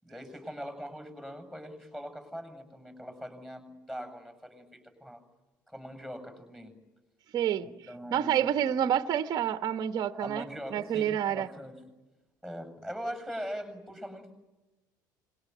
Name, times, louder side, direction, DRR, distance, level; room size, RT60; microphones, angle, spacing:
voice 1, 0.0-5.2 5.7-6.7 7.6-8.5 10.2-11.8 12.4-14.3, equal, 5° left, 8 dB, 7.5 m, -41 dB
voice 2, 7.3-7.7 8.1-11.5, right 10 dB, 40° right, 10 dB, 1.2 m, -28 dB
27.5 x 23.0 x 9.5 m, 1.1 s
figure-of-eight pair, 65°, 10 cm